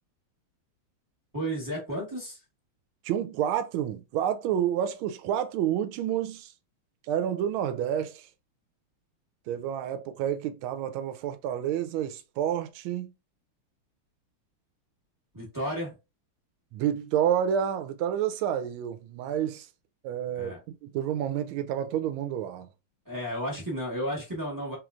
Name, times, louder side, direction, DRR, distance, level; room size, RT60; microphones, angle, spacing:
voice 1, 1.3-2.4 15.3-16.0 20.3-20.6 23.1-24.8, equal, 20° right, 0.5 m, -33 dB
voice 2, 3.0-6.5 7.1-8.3 9.5-13.1 16.7-19.7 20.0-22.7, right 10 dB, 80° right, 1.4 m, -29 dB
3.5 x 3.1 x 2.4 m
omnidirectional pair, 2.3 m